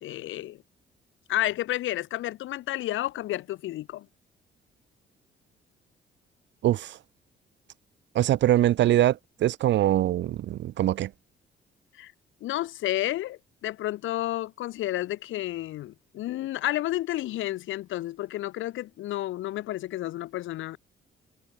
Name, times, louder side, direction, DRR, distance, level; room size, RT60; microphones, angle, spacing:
voice 1, 0.0-0.6 1.3-4.1 11.9-12.1 12.4-20.8, left 15 dB, 80° left, 0.8 m, -31 dB
voice 2, 6.6-7.0 8.1-11.1, right 13 dB, 65° right, 0.6 m, -23 dB
cardioid pair, 90°, 20 cm